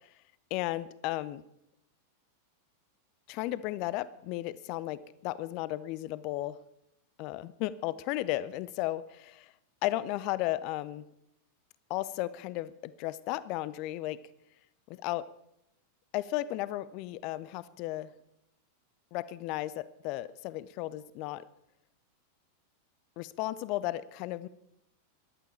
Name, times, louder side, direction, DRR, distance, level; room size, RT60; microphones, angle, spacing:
voice 1, 0.5-1.4 3.3-6.6 7.2-9.5 9.8-11.0 11.9-14.2 14.9-15.3 16.1-18.1 19.1-21.4 23.2-24.5, left 16 dB, 45° left, 18 dB, 0.6 m, -34 dB
15.5 x 11.5 x 4.4 m, 0.82 s
figure-of-eight pair, 90°, 0 cm